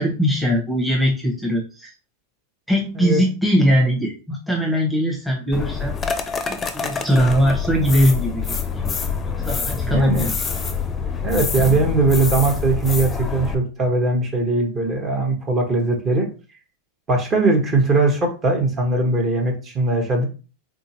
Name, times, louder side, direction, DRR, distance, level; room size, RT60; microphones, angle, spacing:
voice 1, 0.0-1.9 2.7-5.9 6.4-8.6 8.8-9.0 9.2-10.4, equal, ahead, -1 dB, 1.1 m, -20 dB
sound 1, 5.5-13.5, left 5 dB, 20° left, 0.6 m, -26 dB
voice 2, 9.9-10.3 11.2-16.3 17.1-20.3, right 2 dB, 30° right, 2 dB, 1.2 m, -20 dB
3.7 x 2.7 x 2.9 m, 0.33 s
hypercardioid pair, 100°, 0 cm